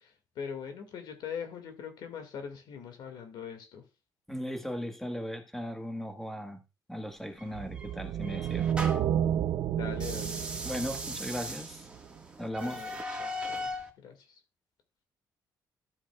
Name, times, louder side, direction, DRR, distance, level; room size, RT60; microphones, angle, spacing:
voice 1, 0.0-3.8 9.7-10.4 12.6-12.9 13.2-13.7 14.0-14.4, left 7 dB, 80° left, 2.1 m, -42 dB
voice 2, 4.3-6.6 6.9-8.7 10.6-11.8 12.4-12.8, equal, 5° left, 1.5 m, -37 dB
sound 1, 7.4-9.2 9.9-13.9, equal, 15° right, 1.7 m, -39 dB
sound 2, 7.5-12.0, right 10 dB, 75° right, 0.5 m, -31 dB
13.0 x 7.4 x 2.4 m
cardioid pair, 120°, 7 cm